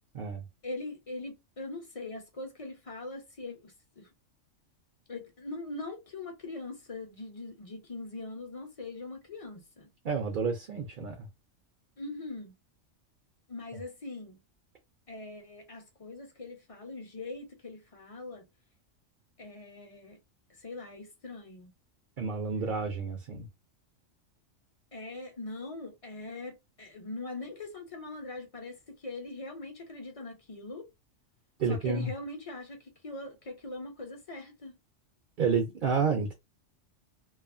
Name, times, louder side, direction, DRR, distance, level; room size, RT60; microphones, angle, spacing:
voice 1, 0.6-4.1 5.1-9.9 12.0-12.6 13.5-14.4 15.1-18.5 19.4-20.2 20.6-21.7 24.9-30.9 31.7-34.7, left 2 dB, 35° left, 0.7 m, -42 dB
voice 2, 10.0-11.3 22.2-23.5 31.6-32.1 35.4-36.3, right 5 dB, 50° right, 0.7 m, -30 dB
2.5 x 2.3 x 2.5 m
omnidirectional pair, 1.3 m